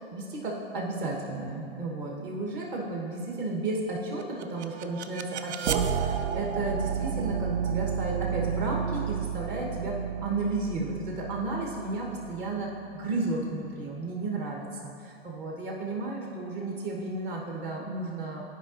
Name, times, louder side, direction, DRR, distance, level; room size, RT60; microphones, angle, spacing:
voice 1, 0.1-18.4, right 2 dB, 40° right, -2 dB, 1.2 m, -33 dB
sound 1, 4.2-13.1, right 7 dB, 80° right, 0.5 m, -32 dB
10.5 x 4.9 x 2.5 m, 2.7 s
hypercardioid pair, 125°, 32 cm